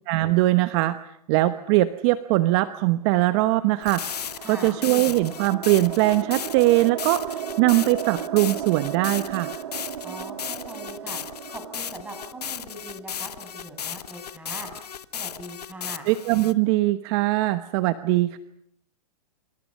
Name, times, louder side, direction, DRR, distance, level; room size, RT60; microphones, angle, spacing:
voice 1, 0.1-1.0 1.3-4.0 4.5-7.2 7.6-9.5 16.1-18.4, right 17 dB, 45° right, 11 dB, 1.1 m, -21 dB
sound 1, 3.3-13.5, right 10 dB, 75° right, 1.6 m, -36 dB
sound 2, 3.8-16.5, left 8 dB, 85° left, 1.3 m, -35 dB
voice 2, 4.4-4.8 10.0-11.2 11.5-14.7 15.1-16.1, right 1 dB, 10° right, 4 dB, 7.7 m, -41 dB
28.5 x 27.0 x 5.6 m, 0.72 s
hypercardioid pair, 125°, 20 cm